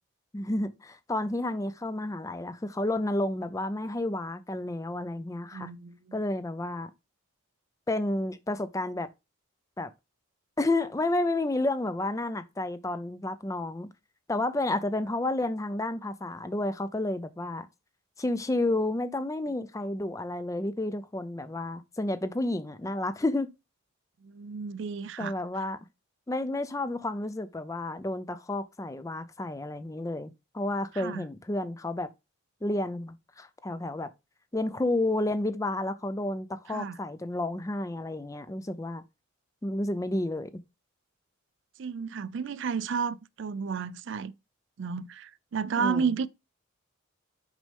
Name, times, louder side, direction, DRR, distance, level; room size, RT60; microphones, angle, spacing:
voice 1, 0.3-5.7 6.1-6.9 7.9-9.1 9.8-9.9 10.6-13.9 14.3-17.7 18.2-23.5 25.2-25.8 26.3-32.1 32.6-34.1 34.5-39.0 39.6-40.5 45.8-46.1, left 2 dB, 15° left, 0.4 m, -31 dB
voice 2, 5.5-6.2 24.2-25.3 31.0-31.2 36.7-37.0 41.8-44.3 44.8-46.3, right 6 dB, 55° right, 0.4 m, -32 dB
6.1 x 5.4 x 3.5 m
head